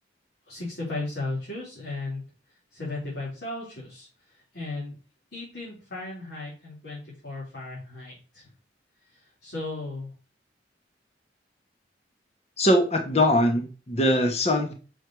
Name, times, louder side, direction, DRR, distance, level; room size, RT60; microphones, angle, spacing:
voice 1, 0.5-2.2 2.7-4.1 4.5-5.0 5.3-8.4 9.4-10.1, left 2 dB, 70° left, -7 dB, 3.9 m, -35 dB
voice 2, 12.6-14.7, left 1 dB, 35° left, 4 dB, 1.2 m, -22 dB
6.5 x 6.4 x 4.8 m, 0.36 s
head